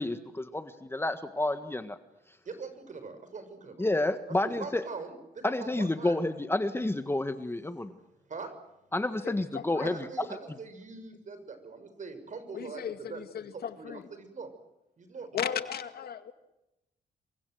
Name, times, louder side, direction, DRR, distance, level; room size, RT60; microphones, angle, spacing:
voice 1, 0.0-2.0 3.8-4.8 5.4-7.9 8.9-9.9, left 2 dB, 15° left, 9 dB, 1.6 m, -30 dB
voice 2, 2.4-3.9 4.4-6.2 8.3-8.5 9.8-12.8 13.1-13.2 13.8-14.5 15.0-15.4, right 4 dB, 50° right, 9 dB, 6.5 m, -42 dB
voice 3, 9.2-9.9 12.5-14.0 15.3-16.3, left 8 dB, 70° left, 10 dB, 2.1 m, -36 dB
28.5 x 24.5 x 7.9 m, 0.93 s
cardioid pair, 95°, 17 cm